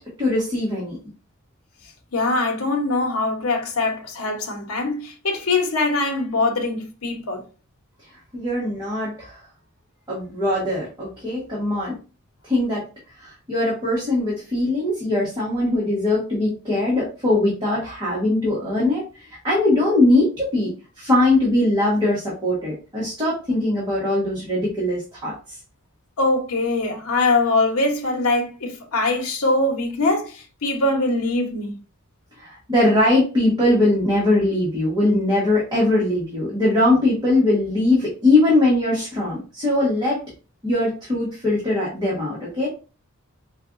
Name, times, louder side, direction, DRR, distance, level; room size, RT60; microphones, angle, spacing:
voice 1, 0.2-1.0 8.3-9.4 10.1-12.0 12.4-12.8 13.2-25.3 32.4-40.2 40.6-42.7, left 2 dB, 20° right, 1.3 m, -21 dB
voice 2, 2.1-7.4 26.2-31.7, left 2 dB, 80° left, 0.9 m, -22 dB
4.6 x 2.3 x 2.5 m
head